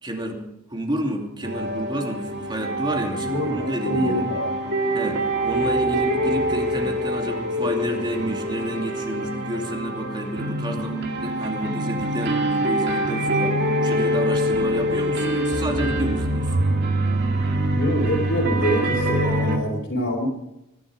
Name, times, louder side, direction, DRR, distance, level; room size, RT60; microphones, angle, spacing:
voice 1, 0.0-4.3 4.9-16.6, equal, 20° right, 2 dB, 2.8 m, -30 dB
sound 1, 1.4-19.6, right 1 dB, 45° right, 2.4 m, -25 dB
voice 2, 3.2-4.4 17.7-20.3, equal, 50° left, -4 dB, 3.6 m, -25 dB
23.5 x 11.5 x 5.1 m, 0.90 s
head